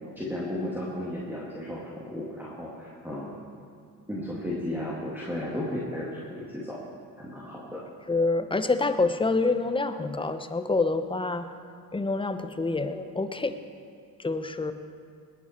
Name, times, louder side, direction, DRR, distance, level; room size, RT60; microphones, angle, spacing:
voice 1, 0.2-3.4 4.1-6.8 7.2-7.8, left 1 dB, 5° right, -6 dB, 2.5 m, -34 dB
voice 2, 8.1-11.5 11.9-13.5 14.2-14.7, left 3 dB, 10° left, 10 dB, 0.8 m, -27 dB
19.0 x 8.9 x 4.5 m, 2.3 s
hypercardioid pair, 55°, 47 cm